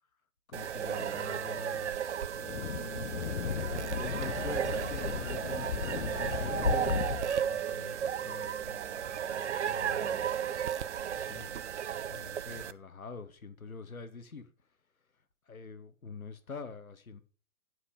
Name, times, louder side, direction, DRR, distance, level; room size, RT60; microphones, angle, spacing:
voice 1, 0.5-2.0 2.7-8.8 9.6-10.3 11.1-11.5 12.1-14.5 15.5-17.2, left 4 dB, 75° left, 1.3 m, -46 dB
sound 1, 0.5-12.7, right 8 dB, 55° right, 0.6 m, -34 dB
Wind, 2.3-7.4, left 7 dB, 60° left, 0.7 m, -35 dB
sound 2, 3.7-10.7, right 3 dB, 5° left, 2.5 m, -58 dB
9.5 x 5.9 x 5.6 m
figure-of-eight pair, 125°, 42 cm